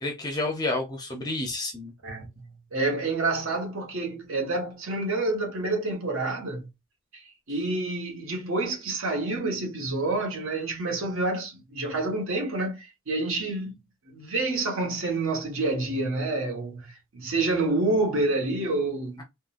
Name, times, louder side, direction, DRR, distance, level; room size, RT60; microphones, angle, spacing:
voice 1, 0.0-1.9, left 2 dB, 20° left, 0.5 m, -30 dB
voice 2, 2.0-6.7 7.1-13.8 14.1-19.2, right 2 dB, 65° right, 1.1 m, -28 dB
3.6 x 2.2 x 2.4 m
head